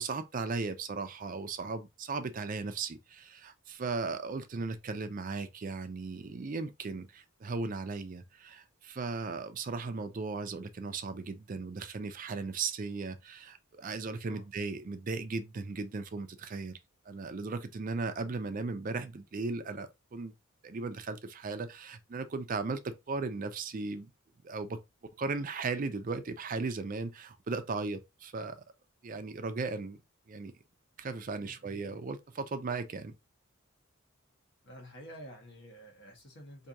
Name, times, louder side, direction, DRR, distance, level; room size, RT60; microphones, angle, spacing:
voice 1, 0.0-16.8 17.1-20.3 20.6-24.1 24.4-24.8 25.2-28.6 29.0-30.0 30.3-30.5 31.0-33.1, right 4 dB, 40° right, 0.4 m, -37 dB
voice 2, 31.4-32.1 34.6-36.7, equal, 60° left, 1.4 m, -50 dB
4.5 x 2.7 x 2.6 m
head